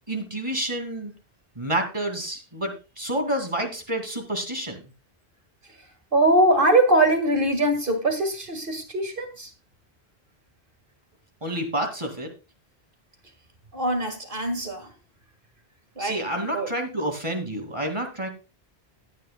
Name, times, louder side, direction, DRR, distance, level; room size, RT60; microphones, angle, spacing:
voice 1, 0.1-1.1 1.6-4.8 11.4-12.3 16.0-18.3, right 1 dB, 30° right, 2.4 m, -29 dB
voice 2, 6.1-9.5 13.7-14.9 16.0-16.2 16.5-16.7, right 1 dB, 55° right, 2.1 m, -22 dB
15.5 x 9.5 x 2.3 m
omnidirectional pair, 1.1 m